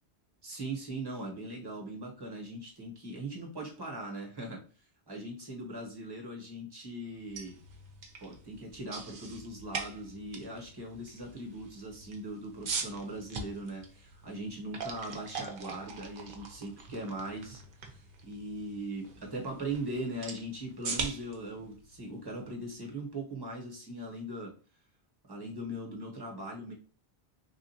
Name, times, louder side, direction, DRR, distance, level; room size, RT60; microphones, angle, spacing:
voice 1, 0.4-4.6 5.1-7.6 8.2-24.5 25.3-26.7, right 1 dB, 25° right, -1 dB, 1.0 m, -40 dB
sound 1, 7.1-23.1, right 4 dB, 60° right, 0.7 m, -43 dB
3.5 x 2.4 x 2.7 m, 0.37 s
omnidirectional pair, 1.1 m